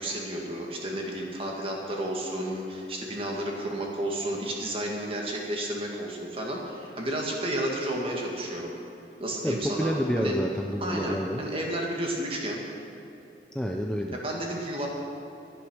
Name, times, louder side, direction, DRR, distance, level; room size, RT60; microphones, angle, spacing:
voice 1, 0.0-8.7 9.2-10.3 10.8-12.6 14.1-14.9, right 1 dB, 30° right, -1 dB, 1.9 m, -32 dB
voice 2, 9.4-11.4 13.5-14.2, equal, 5° left, 1 dB, 0.5 m, -28 dB
12.5 x 11.0 x 6.3 m, 2.9 s
head